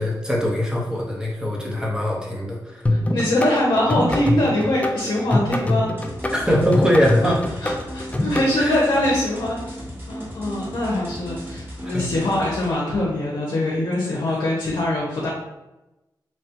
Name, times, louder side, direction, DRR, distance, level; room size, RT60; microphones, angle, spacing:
voice 1, 0.0-2.8 6.3-7.4 8.6-8.8 11.8-12.1 14.0-14.2, equal, 10° right, -3 dB, 0.9 m, -22 dB
voice 2, 2.9-5.9 7.2-7.3 7.6-9.7 10.1-15.3, left 1 dB, 80° left, -4 dB, 0.6 m, -23 dB
sound 1, 2.9-8.5, left 1 dB, 15° left, 0.4 m, -23 dB
sound 2, 6.0-12.7, equal, 30° right, 1.1 m, -36 dB
3.2 x 2.2 x 2.8 m, 1.0 s
cardioid pair, 65°, 8 cm